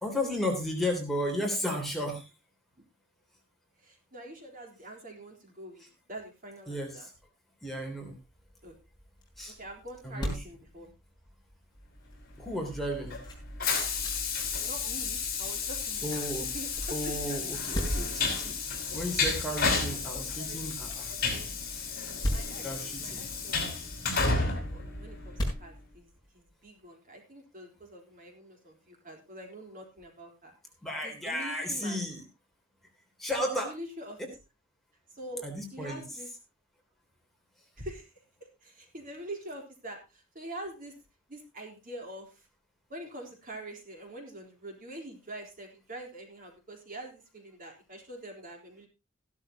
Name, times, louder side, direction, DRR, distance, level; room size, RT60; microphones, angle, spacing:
voice 1, 0.0-2.3 6.7-7.1 7.6-8.2 9.4-9.5 10.0-10.4 12.4-13.2 16.0-16.5 16.9-21.1 21.7-21.9 22.6-23.3 30.8-32.2 33.2-33.7 35.4-36.0, left 1 dB, ahead, 0 dB, 3.4 m, -34 dB
voice 2, 3.8-5.8 6.1-7.1 8.6-8.7 9.6-10.9 14.6-17.4 20.1-20.6 21.1-21.2 22.3-22.7 23.0-23.7 24.4-30.5 31.0-32.0 33.5-34.2 35.1-35.4 35.7-36.3 37.8-38.1 38.6-40.9 41.3-42.4 42.9-48.9, right 1 dB, 45° right, 2 dB, 4.0 m, -45 dB
sound 1, 8.1-26.7, equal, 20° left, 5.4 m, -41 dB
Train, 12.5-25.6, left 4 dB, 50° left, 5.5 m, -32 dB
15.5 x 12.5 x 2.9 m, 0.26 s
head